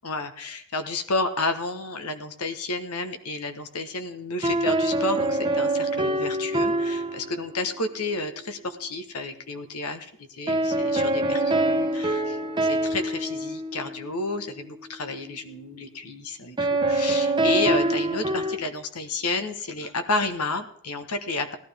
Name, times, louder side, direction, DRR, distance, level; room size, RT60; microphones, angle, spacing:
voice 1, 0.0-21.6, left 2 dB, 75° left, 9 dB, 1.2 m, -31 dB
sound 1, 4.4-7.8 10.5-14.3 16.6-18.6, right 1 dB, 20° right, 1.0 m, -25 dB
17.0 x 12.0 x 3.4 m, 0.62 s
head